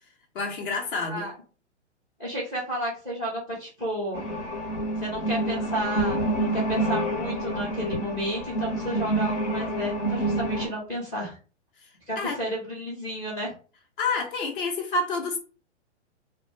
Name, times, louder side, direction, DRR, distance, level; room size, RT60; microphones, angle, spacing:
voice 1, 0.3-1.3 12.2-12.4 14.0-15.4, left 3 dB, 45° left, 0.6 m, -28 dB
voice 2, 2.2-4.2 5.0-11.4 12.1-13.5, equal, 10° left, 0.3 m, -32 dB
sound 1, 4.1-10.7, right 1 dB, 75° left, 0.9 m, -28 dB
2.1 x 2.1 x 3.0 m
figure-of-eight pair, 120°, 36 cm